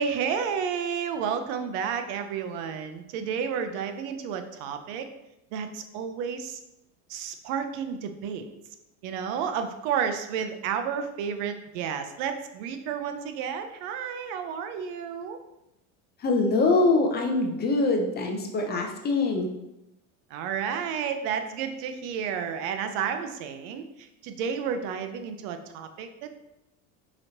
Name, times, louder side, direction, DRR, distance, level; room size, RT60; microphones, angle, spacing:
voice 1, 0.0-5.1 5.5-6.6 7.1-8.5 9.0-15.4 20.3-26.3, right 7 dB, 65° right, 8 dB, 0.6 m, -31 dB
voice 2, 16.2-19.5, left 3 dB, 25° left, 2 dB, 0.4 m, -24 dB
4.8 x 2.9 x 2.8 m, 0.91 s
supercardioid pair, 125°, 39 cm